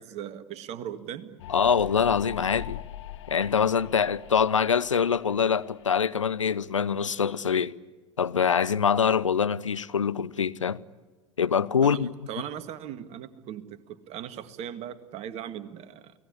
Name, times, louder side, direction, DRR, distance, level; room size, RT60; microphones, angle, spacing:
voice 1, 0.0-1.4 11.8-16.1, right 10 dB, 45° right, 2.0 m, -38 dB
sound 1, 1.4-6.9, left 12 dB, 65° left, 1.4 m, -43 dB
voice 2, 1.5-2.8 3.3-7.7 8.2-10.8 11.4-12.1, left 7 dB, 85° left, 0.8 m, -24 dB
29.5 x 19.0 x 9.8 m
figure-of-eight pair, 80°, 16 cm